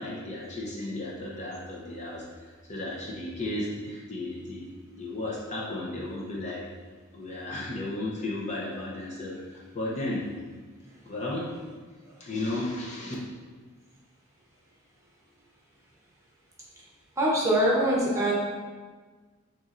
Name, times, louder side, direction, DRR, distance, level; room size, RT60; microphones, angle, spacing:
voice 1, 0.0-4.7 5.0-6.7 7.1-10.2 11.0-11.5 12.2-13.1, left 2 dB, 35° left, -4 dB, 0.7 m, -34 dB
voice 2, 17.2-18.3, right 1 dB, 15° right, -5 dB, 0.9 m, -23 dB
6.8 x 3.0 x 2.5 m, 1.4 s
head